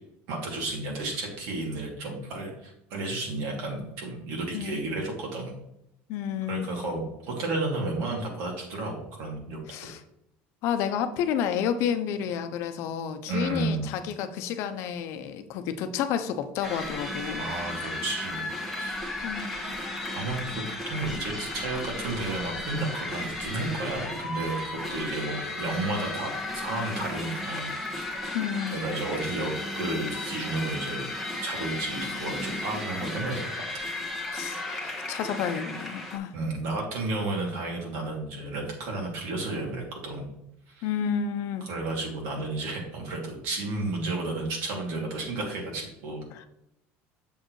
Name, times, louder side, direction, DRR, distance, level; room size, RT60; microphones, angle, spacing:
voice 1, 0.3-5.5 6.5-9.9 13.3-13.8 17.4-18.4 18.7-19.1 20.1-27.7 28.7-31.0 31.4-33.8 36.3-40.3 40.7-40.9 41.6-46.2, right 2 dB, 70° right, 0 dB, 2.6 m, -32 dB
voice 2, 6.1-6.7 9.7-10.0 10.6-17.5 19.2-19.5 28.3-28.8 34.3-36.3 40.8-41.7 46.3-46.5, left 8 dB, 60° left, 9 dB, 0.7 m, -30 dB
sound 1, 16.6-36.2, left 2 dB, ahead, 1.5 m, -34 dB
7.1 x 6.6 x 3.2 m, 0.82 s
cardioid pair, 150°, 5 cm